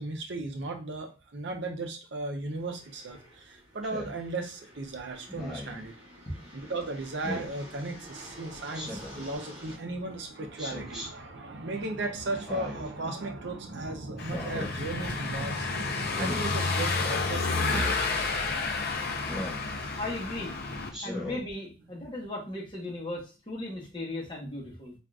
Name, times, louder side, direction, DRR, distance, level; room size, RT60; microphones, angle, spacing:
voice 1, 0.0-5.9 6.5-18.3, right 2 dB, 60° right, 4 dB, 0.6 m, -36 dB
sound 1, 2.5-9.7, equal, 35° right, 1.1 m, -49 dB
Speech synthesizer, 3.8-4.2 5.3-5.8 7.2-7.5 8.7-9.2 10.6-11.1 12.3-12.9 14.2-14.7 16.0-16.4 17.6-17.9 19.3-19.7 20.9-21.4, left 1 dB, 5° right, 1.1 m, -37 dB
Car passing by / Engine, 14.2-20.9, left 3 dB, 55° left, 0.5 m, -30 dB
voice 2, 20.0-20.5 21.0-24.9, left 1 dB, 25° left, -3 dB, 1.0 m, -36 dB
3.7 x 2.4 x 2.3 m, 0.32 s
head